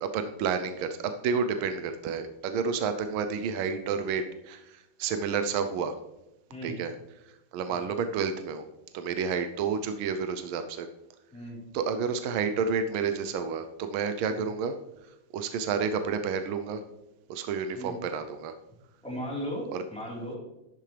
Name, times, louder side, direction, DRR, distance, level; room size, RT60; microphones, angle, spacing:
voice 1, 0.0-5.9 6.6-6.9 7.5-8.6 8.9-10.9 11.7-14.8 15.3-16.8 17.3-18.5 19.7-19.8, right 6 dB, 80° right, 8 dB, 1.5 m, -30 dB
voice 2, 19.0-19.6 19.9-20.4, equal, 5° left, -6 dB, 3.7 m, -36 dB
11.5 x 8.9 x 3.3 m, 0.94 s
omnidirectional pair, 2.3 m